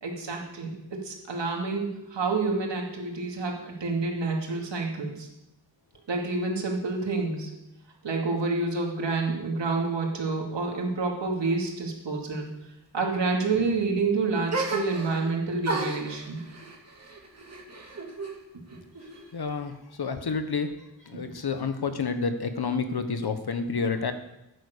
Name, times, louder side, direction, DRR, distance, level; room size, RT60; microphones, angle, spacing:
voice 1, 0.0-5.3 6.1-7.5 8.0-12.5 12.9-16.4 19.1-19.2 21.1-21.2, right 3 dB, 80° right, 0 dB, 2.6 m, -28 dB
sound 1, 14.5-15.3 15.6-18.4 18.7-19.5, right 2 dB, 35° right, 2.2 m, -34 dB
voice 2, 19.3-19.7 20.0-20.7 21.1-24.1, left 5 dB, 60° left, 8 dB, 1.3 m, -29 dB
11.0 x 9.3 x 6.8 m, 0.89 s
wide cardioid pair, 100°, 43 cm